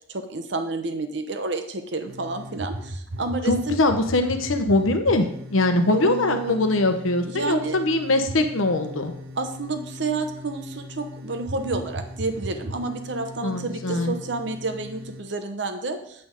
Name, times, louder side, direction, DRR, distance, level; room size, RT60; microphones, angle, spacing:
voice 1, 0.1-3.8 5.9-6.6 7.3-7.8 9.4-16.3, right 3 dB, 60° right, 7 dB, 0.9 m, -30 dB
sound 1, 2.1-15.2, equal, 85° right, 0.9 m, -38 dB
voice 2, 3.5-9.1 13.4-14.2, left 2 dB, 90° left, 7 dB, 1.0 m, -22 dB
8.7 x 7.6 x 3.7 m, 0.71 s
head